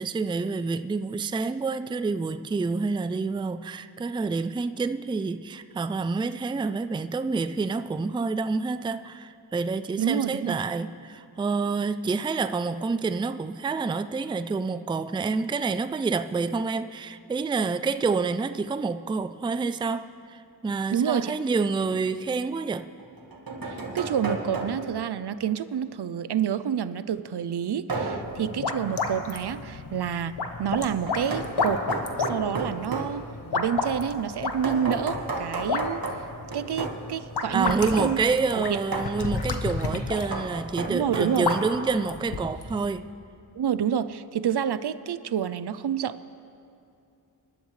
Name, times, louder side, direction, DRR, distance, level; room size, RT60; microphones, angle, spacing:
voice 1, 0.0-22.9 37.5-43.1, right 4 dB, 15° right, 0.3 m, -28 dB
voice 2, 10.0-10.6 20.9-21.4 23.7-30.3 30.6-31.8 32.2-33.2 33.5-36.0 36.5-38.2 38.5-38.8 40.9-41.5 43.6-46.1, right 8 dB, 70° right, 0.6 m, -28 dB
sound 1, 23.0-25.0 27.9-28.4 31.1-33.2 34.6-37.1 38.9-39.2 40.1-41.6, right 3 dB, 55° right, 1.7 m, -33 dB
sound 2, 28.2-42.8, left 4 dB, 70° left, 1.1 m, -32 dB
25.0 x 11.5 x 3.3 m
wide cardioid pair, 60°, 41 cm